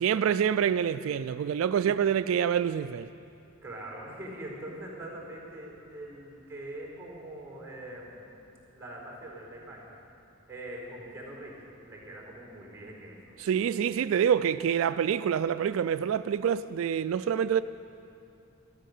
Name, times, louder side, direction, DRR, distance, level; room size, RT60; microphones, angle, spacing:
voice 1, 0.0-3.1 13.4-17.6, right 8 dB, 90° right, 0.3 m, -26 dB
voice 2, 3.6-8.2 8.7-10.0 10.5-11.6 11.8-13.2, right 1 dB, 15° right, 4.4 m, -43 dB
13.0 x 13.0 x 6.6 m
head